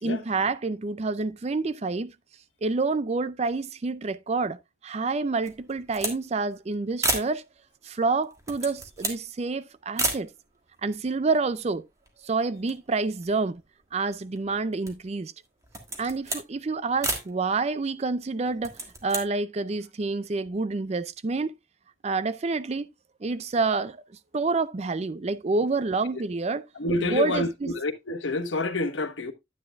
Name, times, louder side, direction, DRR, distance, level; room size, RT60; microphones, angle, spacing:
voice 1, 0.0-2.1 2.6-7.4 7.8-10.3 10.8-11.8 12.2-13.6 13.9-15.3 16.0-18.7 19.0-21.5 22.0-22.9 23.2-24.0 24.3-26.6 27.0-27.7, right 3 dB, 35° right, 0.4 m, -28 dB
sound 1, 5.4-6.2 6.5-6.6 7.0-7.4 8.2-9.3 10.0-10.3 11.0-11.1 11.3-12.2 12.6-13.8 14.4-15.1 15.6-16.5 17.0-17.3 18.5-19.3, right 2 dB, 15° right, 1.6 m, -31 dB
voice 2, 26.8-29.3, left 2 dB, 80° left, 1.2 m, -28 dB
9.7 x 9.5 x 2.3 m
head